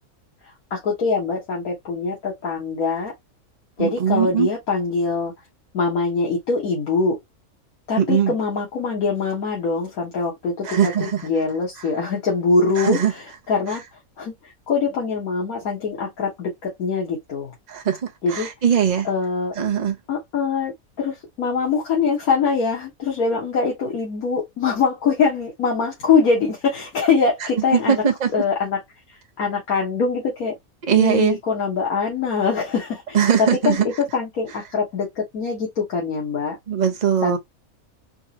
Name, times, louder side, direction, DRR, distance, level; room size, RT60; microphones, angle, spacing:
voice 1, 0.4-3.1 3.8-5.3 5.7-7.2 7.9-13.8 14.2-17.5 18.2-18.5 19.0-19.6 20.1-20.7 21.0-28.0 28.3-28.8 29.1-30.5 31.0-33.8 34.1-36.6 37.2-37.4, left 4 dB, 85° left, 1.8 m, -23 dB
voice 2, 3.8-4.5 8.0-8.3 10.6-11.2 12.8-13.1 13.7-13.8 17.7-19.1 19.6-20.0 27.7-28.3 30.9-31.4 33.1-33.9 36.7-37.4, right 8 dB, 35° right, 0.8 m, -20 dB
4.6 x 3.0 x 2.8 m
omnidirectional pair, 1.5 m